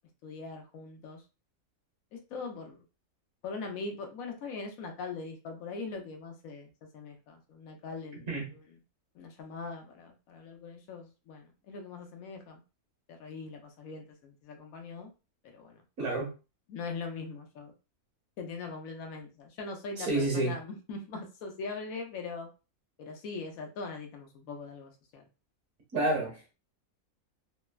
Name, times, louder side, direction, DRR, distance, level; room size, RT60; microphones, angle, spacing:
voice 1, 0.2-1.2 2.1-2.8 3.4-8.6 9.1-12.6 13.1-15.1 15.4-15.8 16.7-17.7 18.4-22.5 23.0-25.3, left 4 dB, 75° left, 1.1 m, -41 dB
voice 2, 16.0-16.3 20.0-20.6 25.9-26.4, right 2 dB, 55° right, 1.3 m, -29 dB
3.3 x 2.0 x 2.2 m
omnidirectional pair, 1.5 m